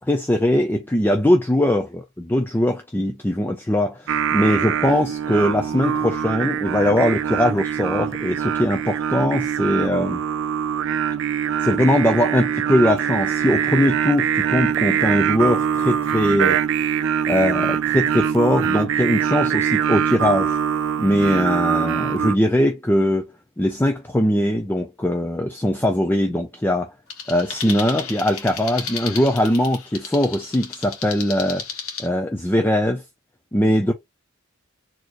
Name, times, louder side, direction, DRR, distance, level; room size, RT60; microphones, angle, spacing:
voice 1, 0.1-10.2 11.6-16.6 17.3-20.6 21.0-23.3 23.6-26.9 27.3-31.6 32.0-33.0 33.5-33.9, left 1 dB, 10° left, 0.5 m, -21 dB
Singing, 4.1-22.4, right 8 dB, 65° right, 0.4 m, -23 dB
sound 1, 27.1-32.1, left 6 dB, 75° left, 1.3 m, -33 dB
4.3 x 2.9 x 3.0 m
head